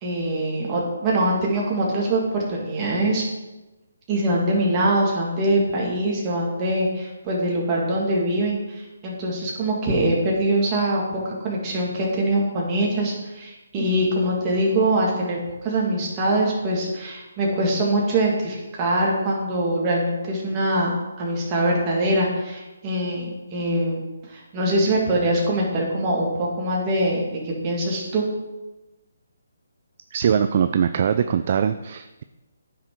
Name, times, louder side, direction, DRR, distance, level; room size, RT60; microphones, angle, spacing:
voice 1, 0.0-3.2 4.1-20.9 21.2-23.3 23.5-24.0 24.3-28.3, right 1 dB, 20° right, -3 dB, 2.3 m, -23 dB
voice 2, 30.1-32.2, right 8 dB, 40° right, 10 dB, 0.4 m, -22 dB
9.5 x 6.1 x 4.7 m, 1.1 s
hypercardioid pair, 165°, 0 cm